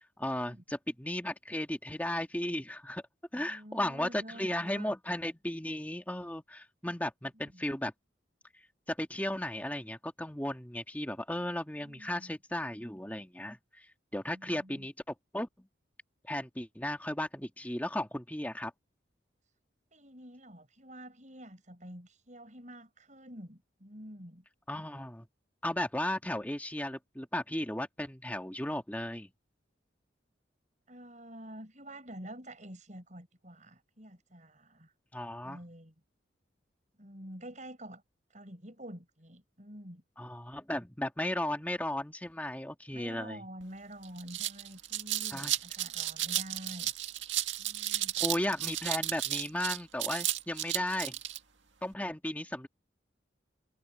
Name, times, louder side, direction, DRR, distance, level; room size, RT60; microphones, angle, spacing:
voice 1, 0.2-3.0 3.3-7.9 8.9-15.7 16.2-18.7 24.7-25.3 25.6-29.3 35.1-35.6 40.2-43.4 45.3-45.5 47.9-51.2 51.8-52.7, left 1 dB, 10° left, 1.8 m, -35 dB
voice 2, 3.3-4.9 7.3-7.6 11.8-12.4 14.3-14.9 19.9-24.4 30.9-34.9 35.4-35.9 37.0-38.0 38.3-40.0 42.9-46.9 47.6-48.2, right 1 dB, 40° right, 6.5 m, -48 dB
sound 1, 43.6-43.7 44.0-51.4, right 13 dB, 80° right, 1.9 m, -33 dB
head